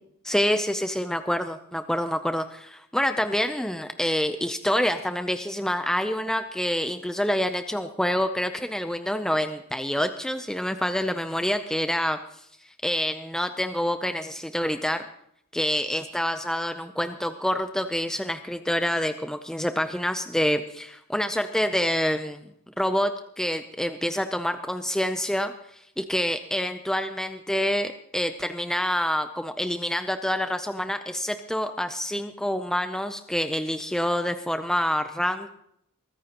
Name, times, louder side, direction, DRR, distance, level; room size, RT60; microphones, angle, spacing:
voice 1, 0.2-12.5 12.8-15.0 15.5-22.5 22.8-35.5, equal, 5° left, 7 dB, 0.5 m, -27 dB
22.5 x 14.5 x 2.9 m, 0.73 s
head